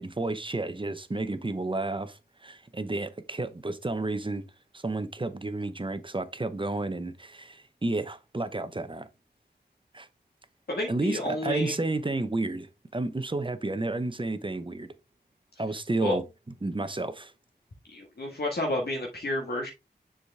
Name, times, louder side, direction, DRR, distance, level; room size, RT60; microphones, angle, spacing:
voice 1, 0.0-4.4 4.7-9.1 9.9-10.1 10.9-12.7 12.9-14.9 15.6-16.2 16.6-17.3, right 2 dB, 30° right, 0.9 m, -31 dB
voice 2, 10.7-11.7 16.0-16.2 17.9-19.7, left 1 dB, 60° left, 1.7 m, -30 dB
6.9 x 5.0 x 3.4 m
wide cardioid pair, 60°, 18 cm